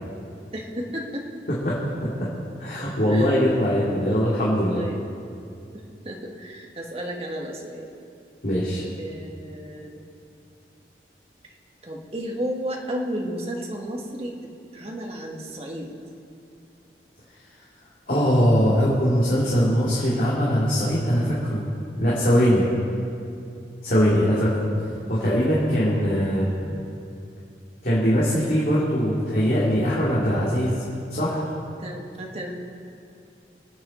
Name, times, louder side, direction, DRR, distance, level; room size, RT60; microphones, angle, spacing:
voice 1, 0.5-1.4 2.1-2.2 2.7-2.8 3.1-4.3 4.7-5.0 5.7-7.9 8.9-10.0 11.8-14.3 14.7-15.9 31.8-32.5, equal, 35° right, 0 dB, 1.7 m, -33 dB
voice 2, 1.6-2.3 2.6-4.8 8.4-8.8 18.1-21.6 22.0-22.7 23.8-24.7 25.1-26.5 27.8-30.7 31.1-31.4, equal, 50° left, -8 dB, 2.7 m, -21 dB
24.0 x 8.9 x 4.4 m, 2.5 s
head